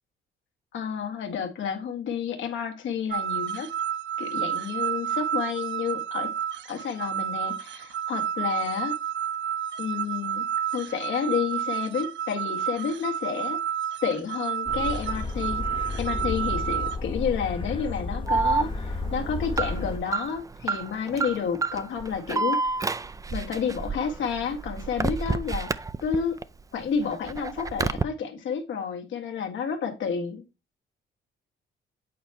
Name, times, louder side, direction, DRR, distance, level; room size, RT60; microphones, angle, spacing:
voice 1, 0.7-3.7 4.2-6.3 6.7-8.9 9.8-13.6 14.0-15.6 16.0-22.8 23.3-25.7 26.0-26.4 26.7-30.4, left 6 dB, 70° left, 1.8 m, -30 dB
sound 1, 3.1-17.0, right 9 dB, 65° right, 0.6 m, -30 dB
sound 2, 14.7-20.0, left 3 dB, 25° left, 0.8 m, -32 dB
Alarm, 18.3-26.4 26.8-28.0, right 4 dB, 15° right, 0.4 m, -29 dB
8.5 x 4.3 x 3.5 m
cardioid pair, 90°, 20 cm